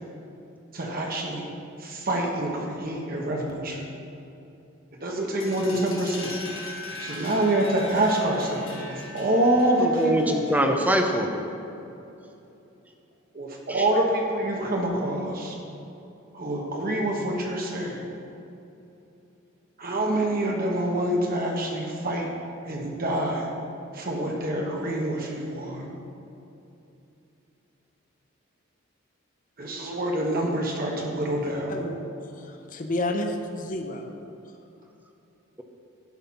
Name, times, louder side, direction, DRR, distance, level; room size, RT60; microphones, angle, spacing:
voice 1, 0.7-1.5 1.8-3.9 5.0-6.4 7.0-10.4 13.3-15.6 16.3-18.1 19.8-22.3 22.6-23.5 23.9-26.0 29.6-31.9, right 1 dB, 45° right, -1 dB, 1.2 m, -26 dB
sound 1, 5.4-10.9, left 2 dB, 65° left, 1.8 m, -40 dB
voice 2, 9.8-11.3 13.7-13.8, right 1 dB, 10° right, 3 dB, 0.7 m, -23 dB
voice 3, 31.7-34.1, left 1 dB, 40° left, 4 dB, 0.7 m, -31 dB
10.5 x 5.7 x 5.8 m, 2.8 s
head